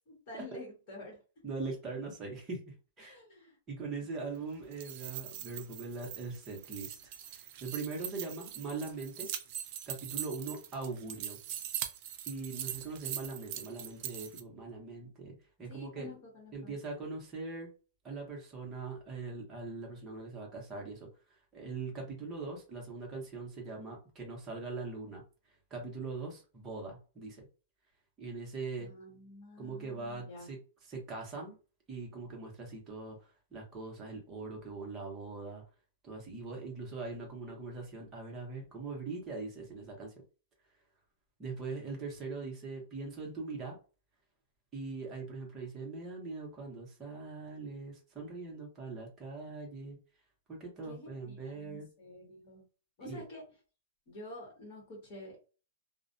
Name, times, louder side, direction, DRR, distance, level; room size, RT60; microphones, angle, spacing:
voice 1, 0.1-1.2 3.0-3.6 12.5-12.8 15.7-16.8 28.8-30.5 50.8-52.6 53.0-53.4 54.1-55.4, left 2 dB, 30° left, -1 dB, 1.0 m, -49 dB
voice 2, 1.4-3.2 3.7-7.0 7.3-9.3 9.9-11.4 12.3-16.1 16.5-17.7 18.0-21.1 21.5-25.2 25.7-27.4 28.2-28.9 29.6-30.6 30.9-31.5 31.9-35.6 36.0-40.1 41.4-43.8 44.7-50.0 50.5-51.9 53.0-53.2, right 3 dB, 15° right, -1 dB, 0.8 m, -41 dB
sound 1, 4.6-14.4, right 11 dB, 35° right, 0.3 m, -42 dB
2.4 x 2.1 x 2.6 m, 0.34 s
hypercardioid pair, 170°, 0 cm